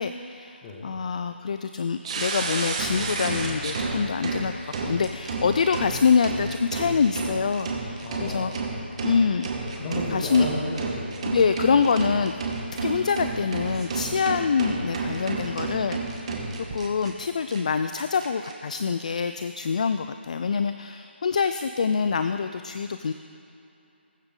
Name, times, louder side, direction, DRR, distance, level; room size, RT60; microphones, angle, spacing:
voice 1, 0.0-4.5 4.8-8.5 9.0-9.5 10.1-10.5 11.3-12.4 12.8-23.1, left 5 dB, 35° left, 9 dB, 0.3 m, -25 dB
voice 2, 0.6-0.9 8.0-8.8 9.6-11.3, left 1 dB, 20° left, -2 dB, 1.6 m, -33 dB
sound 1, 2.0-17.1 17.5-17.6 17.9-18.5, right 3 dB, 30° right, 1.3 m, -31 dB
20.5 x 7.9 x 3.8 m, 2.8 s
figure-of-eight pair, 170°, 6 cm